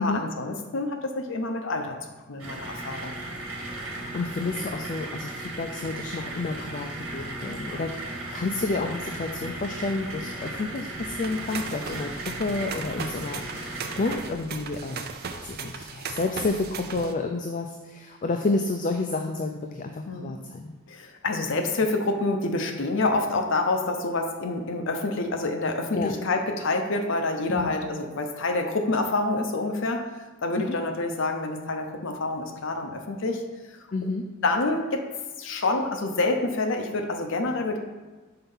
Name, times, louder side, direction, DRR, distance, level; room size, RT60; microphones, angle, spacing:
voice 1, 0.0-2.0 2.3-3.2 20.1-20.3 20.9-30.1 30.4-33.4 34.4-35.0 35.4-37.8, left 2 dB, 60° left, 4 dB, 0.8 m, -27 dB
sound 1, 2.4-14.2, right 2 dB, 60° right, 1.8 m, -36 dB
voice 2, 3.9-6.9 7.1-7.9 8.3-12.1 12.4-20.7 25.9-26.3 27.5-27.7 30.5-30.8 33.9-34.3, left 3 dB, 35° left, 4 dB, 0.4 m, -30 dB
sound 2, 11.2-17.1, right 5 dB, 45° right, 0.5 m, -37 dB
5.7 x 4.4 x 5.5 m, 1.2 s
head